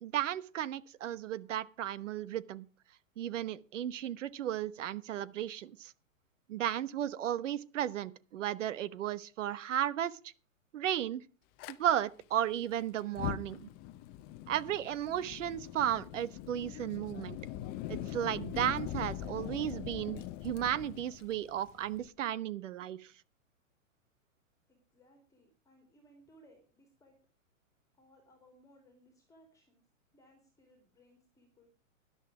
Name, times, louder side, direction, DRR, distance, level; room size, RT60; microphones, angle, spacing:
voice 1, 0.0-2.7 3.2-5.9 6.5-10.3 10.7-11.2 11.7-13.7 14.5-17.4 17.9-23.1, right 11 dB, 65° right, 1.2 m, -34 dB
Fire, 11.6-11.7 13.0-22.1, left 12 dB, 25° left, 0.7 m, -42 dB
voice 2, 24.7-27.2 27.9-29.8 30.1-31.7, equal, 10° left, 2.8 m, -63 dB
13.0 x 11.0 x 4.9 m
hypercardioid pair, 145°, 40 cm